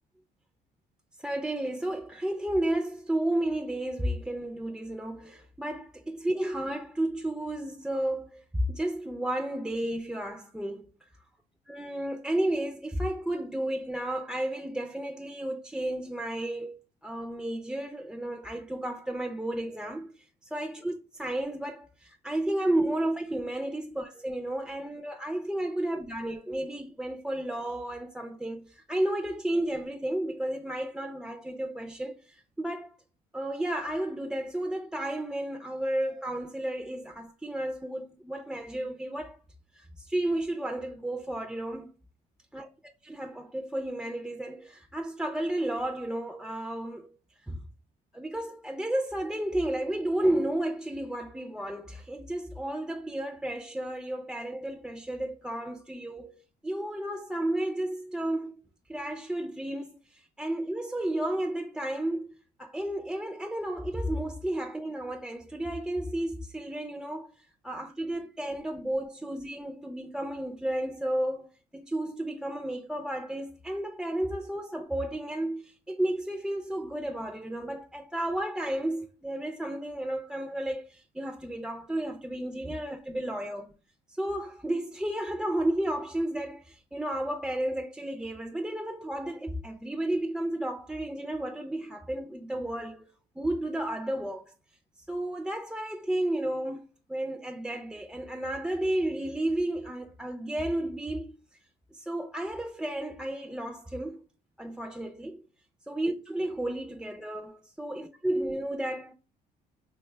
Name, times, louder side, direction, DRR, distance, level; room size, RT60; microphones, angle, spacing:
voice 1, 1.2-10.9 11.7-33.0 33.3-39.4 39.7-41.9 42.5-42.7 43.0-47.1 47.4-47.6 48.1-58.5 58.9-62.3 62.6-83.7 84.1-93.1 93.4-94.5 95.1-101.4 101.9-104.2 104.6-105.4 105.9-109.1, right 1 dB, 5° right, 0.3 m, -32 dB
3.2 x 2.2 x 3.1 m
cardioid pair, 110°, 17 cm